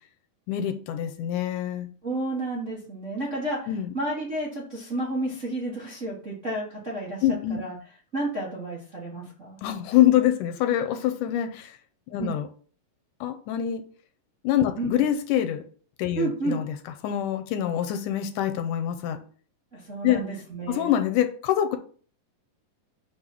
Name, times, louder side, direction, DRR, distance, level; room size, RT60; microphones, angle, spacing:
voice 1, 0.5-1.9 3.7-3.9 7.2-7.6 9.6-11.8 12.1-12.5 13.2-13.8 14.4-15.6 16.0-16.7 17.0-19.2 20.0-20.2 20.7-21.8, left 11 dB, 80° left, 7 dB, 2.1 m, -25 dB
voice 2, 2.0-7.2 7.5-7.8 8.1-9.6 12.2-12.3 14.8-15.0 16.1-16.6 19.7-20.9, right 2 dB, 40° right, -5 dB, 1.1 m, -31 dB
6.0 x 4.0 x 5.9 m, 0.43 s
omnidirectional pair, 3.8 m